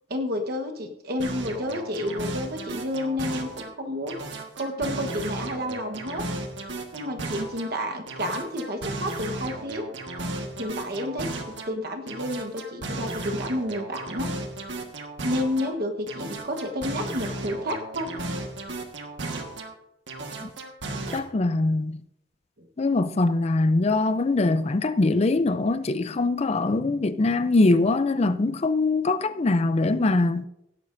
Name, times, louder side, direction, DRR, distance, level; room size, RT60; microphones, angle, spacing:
voice 1, 0.1-4.2 4.5-6.2 6.9-9.9 10.6-14.3 15.2-18.1 22.6-22.7, left 1 dB, 55° right, 1.1 m, -30 dB
sound 1, 1.2-3.7 4.1-7.7 8.1-11.7 12.1-15.7 16.1-19.7 20.1-21.2, right 2 dB, 70° right, 1.5 m, -35 dB
voice 2, 21.1-22.0 22.8-30.4, left 2 dB, 35° left, 0.5 m, -22 dB
17.0 x 11.0 x 2.6 m
head